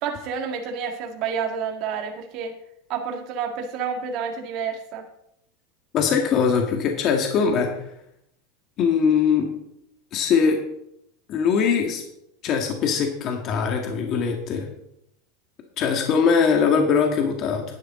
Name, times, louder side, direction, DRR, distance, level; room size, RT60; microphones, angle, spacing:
voice 1, 0.0-2.5 2.9-5.0, right 6 dB, 55° right, 3 dB, 1.9 m, -29 dB
voice 2, 5.9-7.7 8.8-9.5 10.1-10.6 11.3-12.0 12.4-14.7 15.8-17.6, left 6 dB, 45° left, 3 dB, 1.7 m, -21 dB
11.0 x 9.6 x 3.8 m, 0.77 s
supercardioid pair, 125°, 0 cm